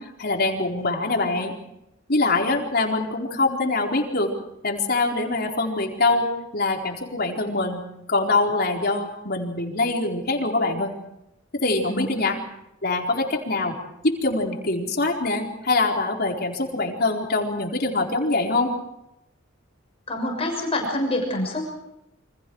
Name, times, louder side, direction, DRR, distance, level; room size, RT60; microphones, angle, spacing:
voice 1, 0.0-1.6 2.1-4.3 4.6-10.9 11.6-12.4 12.8-13.7 14.0-18.7, left 2 dB, 50° left, 1 dB, 4.4 m, -24 dB
voice 2, 20.1-21.7, left 1 dB, 30° left, 2 dB, 6.5 m, -26 dB
29.0 x 26.0 x 4.8 m, 0.85 s
head